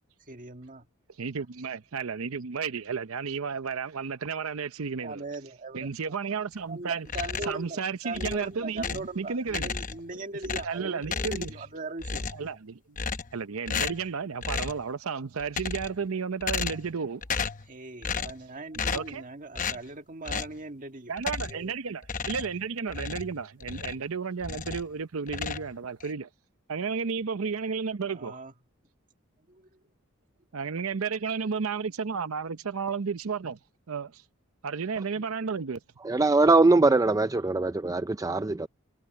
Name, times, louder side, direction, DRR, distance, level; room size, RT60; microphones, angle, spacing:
voice 1, 0.3-0.9 5.0-6.1 6.7-12.3 17.7-21.1 21.5-21.7 28.1-28.5 29.5-29.8, right 2 dB, 40° right, 1.7 m, -39 dB
voice 2, 1.2-5.2 5.7-9.7 10.6-11.5 12.3-12.8 13.3-17.2 18.9-19.2 21.1-26.3 26.7-28.4 30.5-33.6 33.9-34.2 34.6-35.8, right 5 dB, 80° right, 0.7 m, -32 dB
sound 1, 7.1-7.7 8.1-9.1 9.5-10.1 10.4-11.7 12.0-12.5 13.0-13.4 13.7-14.1 14.4-14.8 15.4-16.0 16.4-17.0 17.2-17.7 18.0-18.4 18.7-19.2 19.6-19.8 20.3-20.6 21.2-21.7 22.0-24.1 24.4-24.9 25.3-26.1, left 5 dB, 40° left, 0.9 m, -33 dB
voice 3, 36.0-38.7, right 3 dB, 15° right, 0.4 m, -22 dB
head